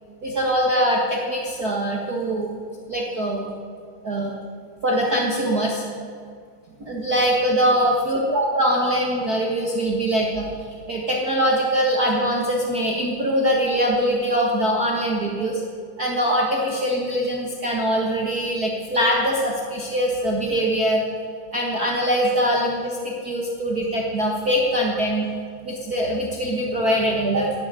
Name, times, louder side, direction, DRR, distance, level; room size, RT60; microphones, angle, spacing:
voice 1, 0.2-2.5 2.9-3.5 4.0-4.3 4.8-5.8 6.8-10.5 10.9-15.6 16.0-21.1 21.5-25.3 25.6-27.5, equal, 40° right, -2 dB, 1.4 m, -22 dB
11.5 x 11.0 x 8.8 m, 2.1 s
omnidirectional pair, 3.6 m